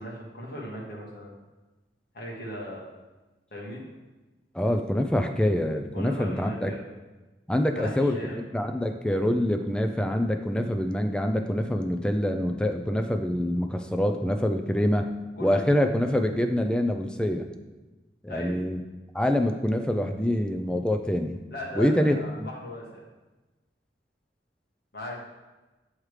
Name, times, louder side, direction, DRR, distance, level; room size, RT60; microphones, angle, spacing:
voice 1, 0.0-1.3 2.1-2.8 3.5-3.8 5.9-6.8 7.8-8.4 15.4-15.8 18.3-18.5 21.5-22.8 24.9-25.2, equal, 60° left, -3 dB, 1.5 m, -37 dB
voice 2, 4.5-6.7 7.5-15.1 15.4-17.5 18.2-18.8 19.1-21.4 21.8-22.5, left 1 dB, 5° left, 5 dB, 0.4 m, -25 dB
7.2 x 3.2 x 4.8 m, 1.1 s
head